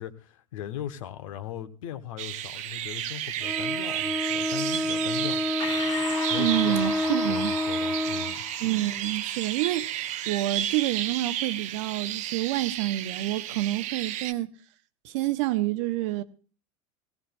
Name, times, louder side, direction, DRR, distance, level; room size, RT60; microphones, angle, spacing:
voice 1, 0.0-5.4 6.3-8.5, left 11 dB, 65° left, 1.2 m, -39 dB
sound 1, 2.2-14.3, right 12 dB, 45° right, 0.7 m, -32 dB
Bowed string instrument, 3.4-8.4, left 1 dB, ahead, 0.9 m, -29 dB
Breathing, 5.6-10.5, left 6 dB, 30° left, 1.1 m, -38 dB
voice 2, 6.3-7.5 8.6-14.5 15.0-16.2, right 16 dB, 60° right, 0.9 m, -28 dB
17.5 x 16.5 x 2.3 m
figure-of-eight pair, 80°, 18 cm